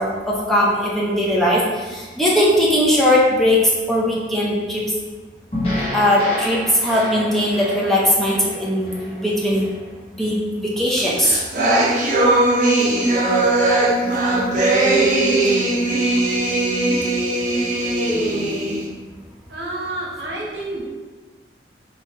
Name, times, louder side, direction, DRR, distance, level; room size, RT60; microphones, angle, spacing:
voice 1, 0.0-3.6 3.9-4.8 5.9-9.7 10.2-11.4 16.3-16.6, left 1 dB, ahead, -5 dB, 0.5 m, -19 dB
sound 1, 5.5-9.8, left 1 dB, 35° left, 1.2 m, -29 dB
sound 2, 11.0-18.9, right 2 dB, 45° right, 0.7 m, -19 dB
voice 2, 19.5-20.8, right 2 dB, 70° right, -4 dB, 1.0 m, -29 dB
3.1 x 2.8 x 4.3 m, 1.3 s
head